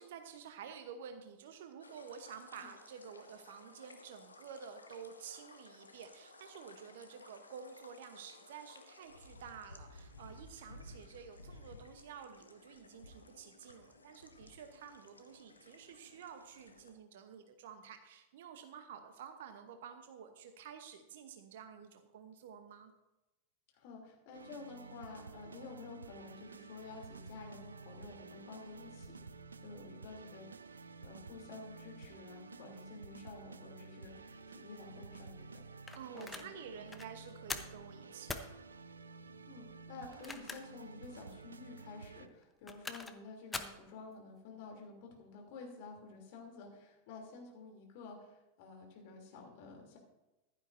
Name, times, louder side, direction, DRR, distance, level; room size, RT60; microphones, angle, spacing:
voice 1, 0.0-22.9 35.9-38.5 39.9-40.1, right 7 dB, 55° right, 7 dB, 0.9 m, -51 dB
sound 1, 1.8-16.9, left 2 dB, 80° left, 1.0 m, -57 dB
voice 2, 23.7-29.1 29.6-35.6 36.1-36.5 39.5-50.0, left 4 dB, 50° left, 1 dB, 3.1 m, -51 dB
Epic Finale (loop), 24.3-42.3, right 4 dB, 75° right, 0.5 m, -52 dB
sound 2, 35.9-36.5 36.9-37.1 37.5-37.8 38.3-38.5 40.0-40.8 41.2-41.3 42.4-43.2 43.5-43.8, left 3 dB, 10° left, 0.9 m, -42 dB
15.0 x 11.5 x 2.7 m, 1.0 s
figure-of-eight pair, 90°, 0 cm